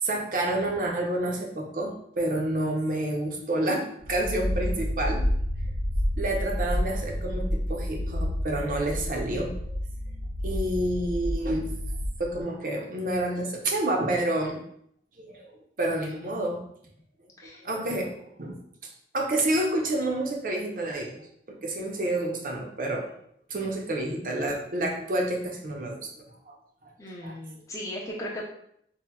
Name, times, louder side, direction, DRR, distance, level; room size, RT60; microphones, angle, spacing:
voice 1, 0.0-5.3 6.2-9.7 10.4-11.7 12.2-14.6 15.2-16.6 17.4-18.6 19.1-23.1 23.5-26.6 26.8-26.9 27.2-27.4, right 1 dB, 45° right, 1 dB, 0.5 m, -29 dB
sound 1, 4.0-12.4, equal, 75° right, 0.8 m, -30 dB
voice 2, 27.0-28.4, left 1 dB, 15° left, -4 dB, 0.5 m, -37 dB
4.1 x 2.1 x 2.2 m, 0.69 s
head